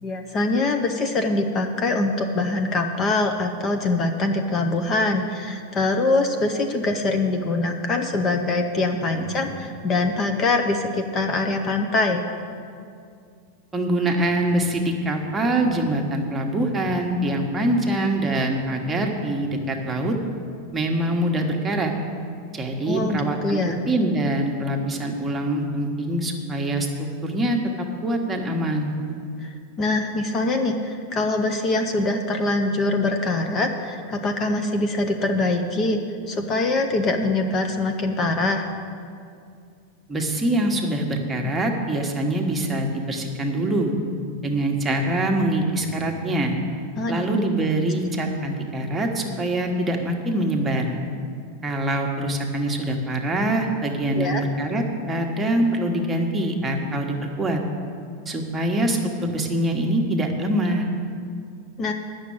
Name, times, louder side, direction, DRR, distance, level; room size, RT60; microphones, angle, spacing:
voice 1, 0.0-12.3 22.9-23.8 29.4-36.0 36.3-38.6 47.0-47.2 54.1-54.4 61.8-61.9, left 2 dB, 30° left, 5 dB, 0.7 m, -23 dB
voice 2, 9.1-9.5 13.7-20.2 20.7-21.9 22.5-28.9 40.1-43.9 44.4-46.6 47.1-51.0 51.6-57.6 58.3-60.9, right 1 dB, 15° right, 1 dB, 1.3 m, -24 dB
9.2 x 6.4 x 8.6 m, 2.3 s
supercardioid pair, 130°, 0 cm